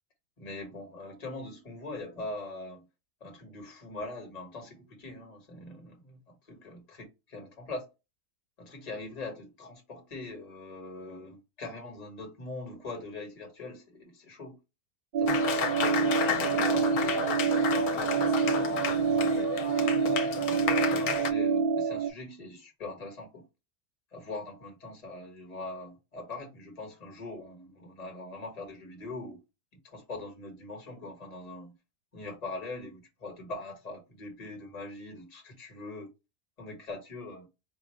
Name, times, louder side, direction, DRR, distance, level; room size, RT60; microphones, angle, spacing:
voice 1, 0.4-2.8 3.2-7.9 8.6-14.6 15.2-19.1 20.0-20.3 20.9-23.4 24.1-29.4 29.8-31.7 32.1-36.1 36.6-37.5, left 2 dB, 25° left, 1.3 m, -42 dB
sound 1, 15.1-22.1, right 5 dB, 70° right, 0.4 m, -27 dB
Applause, 15.3-21.3, left 7 dB, 75° left, 1.1 m, -32 dB
4.7 x 2.4 x 3.1 m
omnidirectional pair, 1.6 m